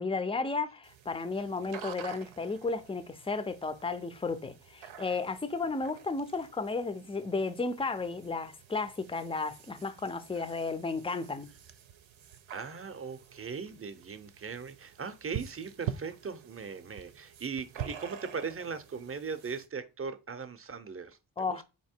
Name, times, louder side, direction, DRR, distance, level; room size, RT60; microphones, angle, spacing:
voice 1, 0.0-11.5 21.4-21.6, left 3 dB, 15° left, 0.5 m, -33 dB
sound 1, 0.8-19.7, right 9 dB, 85° right, 0.7 m, -47 dB
voice 2, 12.5-21.6, right 5 dB, 30° right, 0.7 m, -39 dB
4.0 x 2.9 x 4.4 m
wide cardioid pair, 75°, 46 cm